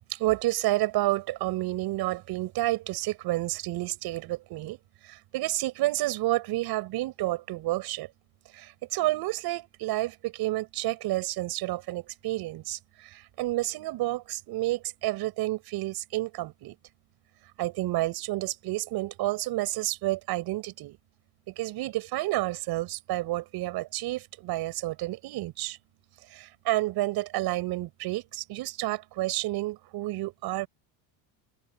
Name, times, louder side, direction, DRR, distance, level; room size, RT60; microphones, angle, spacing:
voice 1, 0.1-4.8 5.0-8.1 8.5-16.8 17.6-21.0 21.6-25.8 26.3-30.7, right 17 dB, 60° right, 6.5 m, -30 dB
open air
cardioid pair, 130°, 43 cm